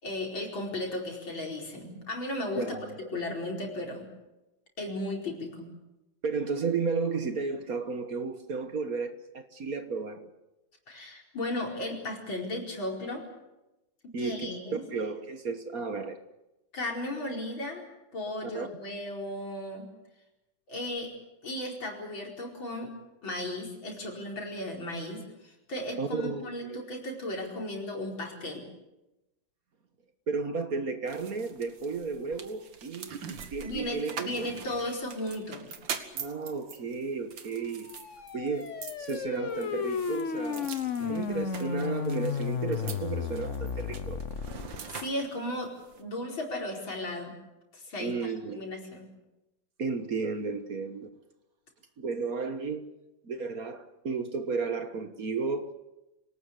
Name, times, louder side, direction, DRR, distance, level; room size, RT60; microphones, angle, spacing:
voice 1, 0.0-2.6 3.1-4.1 4.8-5.7 10.9-13.2 14.0-14.8 16.7-17.8 18.1-19.9 20.7-21.1 21.4-22.9 23.2-28.7 33.6-35.8 44.9-47.4 47.7-49.1, left 1 dB, 80° left, 5.5 m, -35 dB
voice 2, 2.5-3.0 6.2-10.3 14.1-16.2 18.5-18.7 26.0-26.8 30.3-33.2 33.5-34.5 36.1-37.9 38.3-38.7 39.0-40.7 41.1-44.2 48.0-48.7 49.8-51.1 52.0-52.9 53.2-55.7, right 4 dB, 50° right, 1.7 m, -33 dB
sound 1, 31.1-46.0, right 6 dB, 70° right, 2.3 m, -44 dB
sound 2, 37.8-44.8, left 6 dB, 45° left, 1.2 m, -33 dB
26.5 x 18.5 x 8.3 m
omnidirectional pair, 2.1 m